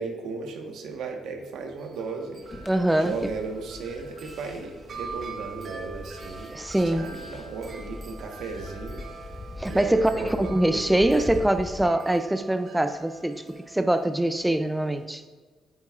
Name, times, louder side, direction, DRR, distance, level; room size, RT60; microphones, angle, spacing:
voice 1, 0.0-2.4 2.9-11.3, right 4 dB, 80° right, 3 dB, 1.3 m, -36 dB
Wind chime, 1.7-15.1, right 4 dB, 45° right, 1.0 m, -44 dB
sound 1, 2.4-11.8, left 2 dB, 30° left, 1.4 m, -42 dB
voice 2, 2.6-3.2 6.5-7.1 9.6-15.2, right 1 dB, 10° right, 9 dB, 0.4 m, -24 dB
9.4 x 8.7 x 2.5 m, 1.4 s
cardioid pair, 90°, 0 cm